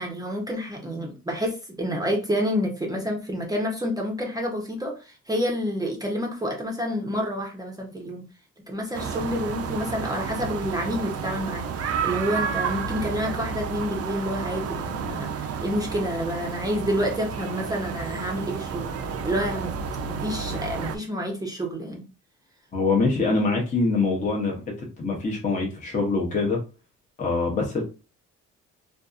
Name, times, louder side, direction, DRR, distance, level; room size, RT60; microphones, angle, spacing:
voice 1, 0.0-8.2 8.7-19.7 20.1-22.0, equal, 10° right, 0.6 m, -29 dB
sound 1, 8.9-21.0, right 6 dB, 55° right, 0.5 m, -31 dB
voice 2, 22.7-26.6 27.2-27.8, left 3 dB, 25° left, 0.7 m, -24 dB
2.6 x 2.4 x 2.4 m
cardioid pair, 90°, 30 cm